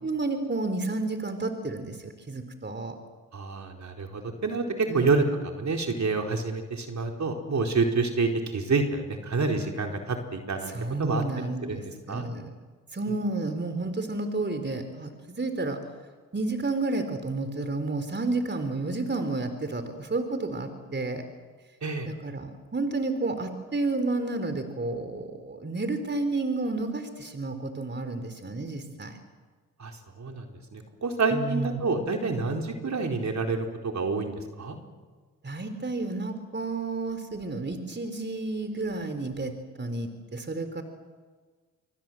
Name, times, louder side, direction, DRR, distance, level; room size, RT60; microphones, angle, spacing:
voice 1, 0.0-3.0 4.9-5.1 10.7-12.5 12.9-15.8 16.3-21.3 22.1-29.2 31.3-31.8 35.4-40.8, right 2 dB, 30° right, 8 dB, 3.9 m, -31 dB
voice 2, 3.3-10.7 11.0-11.2 11.6-11.8 12.1-12.3 21.8-22.1 29.8-30.5 30.7-34.8, right 3 dB, 50° right, 3 dB, 4.4 m, -28 dB
27.5 x 24.0 x 7.7 m, 1.4 s
supercardioid pair, 50°, 37 cm